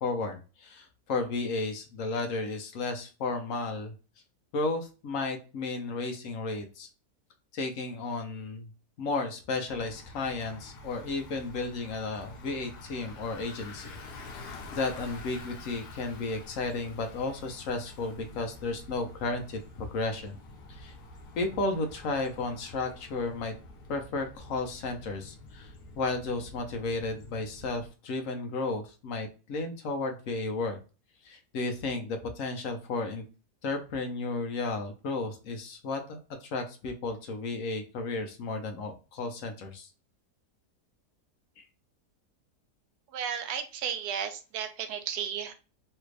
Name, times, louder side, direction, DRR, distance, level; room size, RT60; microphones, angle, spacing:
voice 1, 0.0-3.9 4.5-6.9 7.5-8.7 9.0-13.9 14.3-20.4 20.7-20.9 21.4-23.5 23.9-30.8 31.2-33.2 33.6-39.9 41.6-41.7, left 3 dB, 65° left, 5 dB, 0.9 m, -33 dB
Bicycle, 9.7-27.9, left 2 dB, 90° left, 1.3 m, -47 dB
voice 2, 43.1-45.5, right 8 dB, 80° right, 7 dB, 1.1 m, -34 dB
3.3 x 2.4 x 3.1 m, 0.33 s
omnidirectional pair, 1.7 m